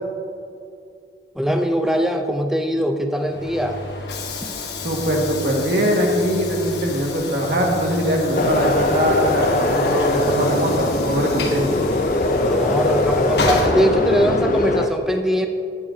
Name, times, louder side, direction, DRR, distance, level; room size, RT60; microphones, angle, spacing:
voice 1, 1.4-3.8 4.4-4.5 12.4-15.5, equal, 5° right, 5 dB, 0.6 m, -21 dB
Train / Sliding door, 3.2-14.6, left 3 dB, 70° left, 1.3 m, -31 dB
voice 2, 4.8-11.6, equal, 60° right, -1 dB, 1.9 m, -21 dB
sound 1, 8.3-14.9, left 2 dB, 50° left, 0.6 m, -21 dB
15.5 x 10.0 x 2.8 m, 2.5 s
head